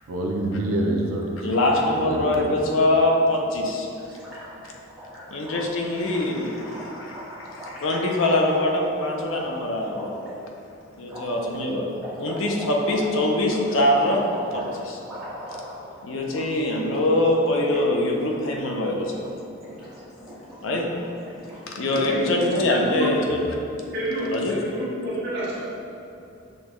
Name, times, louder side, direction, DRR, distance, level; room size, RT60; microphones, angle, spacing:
voice 1, 0.1-1.4 2.0-2.5 23.3-23.5, right 1 dB, 85° right, 0 dB, 0.4 m, -27 dB
voice 2, 1.4-3.9 5.3-10.1 11.0-11.9 12.2-14.3 14.5-15.0 16.0-19.2 20.6-20.9 21.7-23.4 24.3-24.6, left 1 dB, 65° left, 0 dB, 0.5 m, -23 dB
Gurgling, 3.9-8.6 9.2-9.3 9.9-10.3 11.0-16.4 16.7-17.9 18.1-18.4 18.7-19.2 19.5-22.9, equal, 5° right, 1.2 m, -39 dB
voice 3, 21.9-22.6 22.9-23.1 23.9-25.6, equal, 50° right, -10 dB, 1.3 m, -29 dB
6.3 x 2.3 x 3.0 m, 2.8 s
head